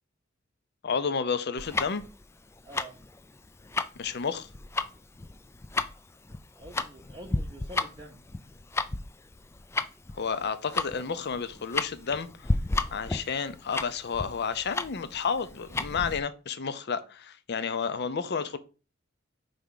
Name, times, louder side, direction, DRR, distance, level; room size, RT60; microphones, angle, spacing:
voice 1, 0.8-2.0 4.0-4.5 10.1-12.5 12.9-18.6, left 6 dB, 55° left, 0.6 m, -31 dB
Tick-tock, 1.6-16.2, left 3 dB, 15° left, 0.3 m, -33 dB
voice 2, 2.6-3.0 6.6-8.2 18.0-18.1, equal, 25° right, 0.7 m, -46 dB
4.8 x 3.5 x 5.6 m
head